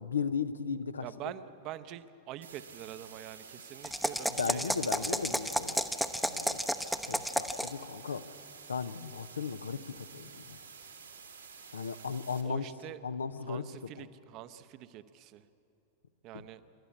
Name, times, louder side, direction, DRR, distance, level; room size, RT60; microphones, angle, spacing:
voice 1, 0.0-1.1 4.3-5.8 6.3-6.6 7.1-8.2 8.7-10.6 11.7-12.7 13.0-13.7 14.0-14.1, left 6 dB, 75° left, 13 dB, 0.8 m, -36 dB
voice 2, 1.0-5.4 12.4-13.0 13.4-15.4 16.2-16.6, right 12 dB, 40° right, 12 dB, 0.8 m, -45 dB
sound 1, 2.4-12.4, right 5 dB, 75° right, 2.3 m, -51 dB
sound 2, 3.8-7.8, equal, ahead, 0.8 m, -32 dB
27.5 x 12.5 x 8.5 m, 2.8 s
figure-of-eight pair, 90°, 0 cm